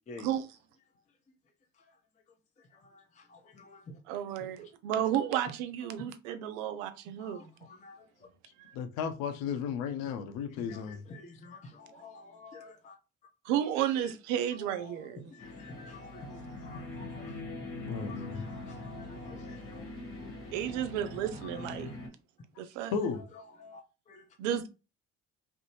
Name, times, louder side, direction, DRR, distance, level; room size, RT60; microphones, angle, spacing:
voice 1, 2.6-4.0 4.6-4.7 5.3-5.4 6.0-6.1 7.2-8.3 10.5-13.0 14.0-14.1 14.7-17.4 17.9-19.9 20.2-20.3 21.3-22.0 23.0-24.3, left 2 dB, 20° left, 0.5 m, -50 dB
voice 2, 4.1-7.5 8.7-8.8 13.4-15.3 20.5-21.9 22.6-22.9 24.4-24.6, right 10 dB, 80° right, 0.5 m, -32 dB
voice 3, 8.7-11.0 17.9-18.4 22.9-23.2, left 6 dB, 70° left, 0.6 m, -34 dB
sound 1, 15.4-22.1, left 2 dB, 35° left, 1.1 m, -42 dB
2.6 x 2.1 x 2.8 m
hypercardioid pair, 55°, 37 cm